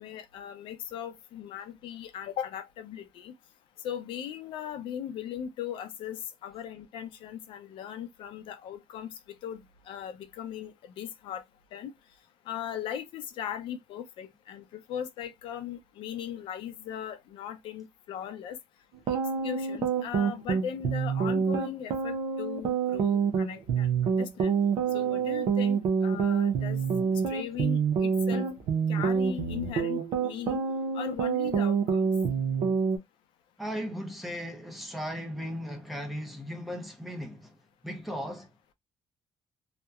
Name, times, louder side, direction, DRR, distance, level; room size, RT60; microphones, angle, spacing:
voice 1, 0.0-3.3 3.8-9.1 9.4-11.4 11.7-11.9 12.5-18.6 19.1-19.2 19.4-24.6 24.9-25.8 26.0-26.8 27.3-28.5 28.9-30.6 30.9-32.1, left 9 dB, 80° left, 0.5 m, -38 dB
sound 1, 18.9-33.0, right 6 dB, 85° right, 0.6 m, -27 dB
voice 2, 33.6-37.6 37.8-38.5, equal, ahead, 0.6 m, -37 dB
2.8 x 2.1 x 2.3 m
cardioid pair, 175°, 9 cm